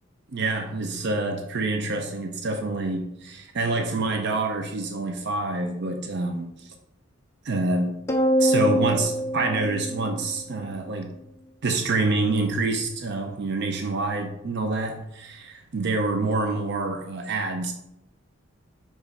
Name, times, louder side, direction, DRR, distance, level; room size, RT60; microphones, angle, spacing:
voice 1, 0.3-6.7 7.4-8.0 8.4-11.1 11.6-17.7, right 3 dB, 55° right, 5 dB, 0.5 m, -27 dB
sound 1, 8.1-10.7, equal, 15° left, 0.3 m, -24 dB
5.0 x 3.7 x 5.4 m, 0.87 s
head